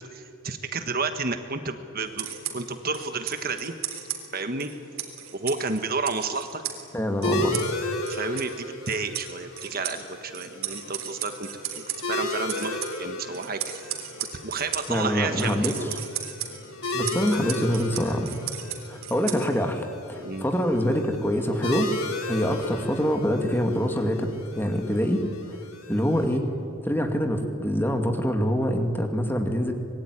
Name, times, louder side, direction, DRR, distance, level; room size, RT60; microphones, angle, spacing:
voice 1, 0.0-3.7 4.3-4.7 5.3-6.6 8.1-11.5 12.1-14.0 14.4-16.0 20.2-20.5 22.4-22.6, right 4 dB, 45° right, 8 dB, 1.3 m, -31 dB
sound 1, 2.1-19.8, right 9 dB, 70° right, 3.7 m, -37 dB
voice 2, 6.9-7.6 14.9-15.7 16.9-18.3 18.9-21.9 22.3-25.2 25.9-26.5 26.8-29.7, equal, 10° left, 5 dB, 2.2 m, -25 dB
sound 2, 7.2-26.4, left 2 dB, 70° left, 3.7 m, -35 dB
25.5 x 21.0 x 9.9 m, 2.6 s
head